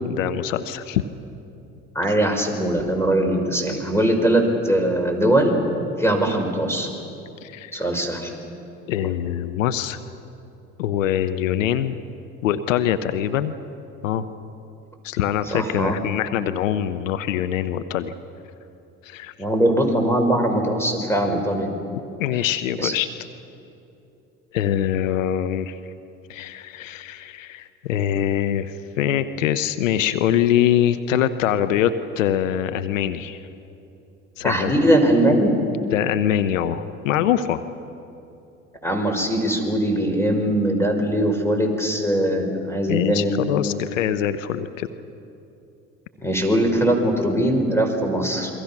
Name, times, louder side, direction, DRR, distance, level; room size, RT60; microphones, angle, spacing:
voice 1, 0.1-1.0 7.4-7.9 8.9-10.0 10.8-12.0 12.4-13.5 14.0-14.2 15.0-18.1 19.0-19.3 22.2-23.1 24.5-25.8 26.3-33.4 34.4-34.8 35.9-37.7 42.9-44.9, left 10 dB, 85° left, 11 dB, 0.9 m, -23 dB
voice 2, 1.9-5.5 6.0-6.9 7.7-8.3 15.5-16.0 19.4-21.7 22.8-22.9 34.4-35.5 38.8-43.3 46.2-48.5, right 1 dB, 5° left, 4 dB, 5.8 m, -21 dB
28.5 x 23.5 x 6.0 m, 2.8 s
hypercardioid pair, 60°, 38 cm